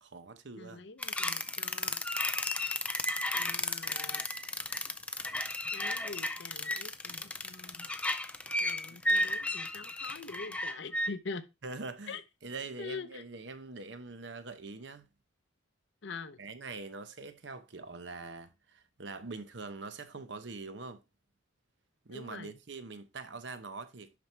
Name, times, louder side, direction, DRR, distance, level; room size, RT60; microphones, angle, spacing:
voice 1, 0.0-0.8 11.6-15.1 16.4-21.0 22.0-24.1, right 3 dB, 60° right, 0.9 m, -44 dB
voice 2, 0.6-2.0 3.3-4.2 5.7-7.9 8.6-11.4 12.1-12.2 12.8-13.2 16.0-16.4 22.1-22.5, left 4 dB, 65° left, 0.7 m, -44 dB
sound 1, 1.0-11.1, left 1 dB, 5° left, 0.4 m, -33 dB
11.5 x 4.6 x 3.3 m
head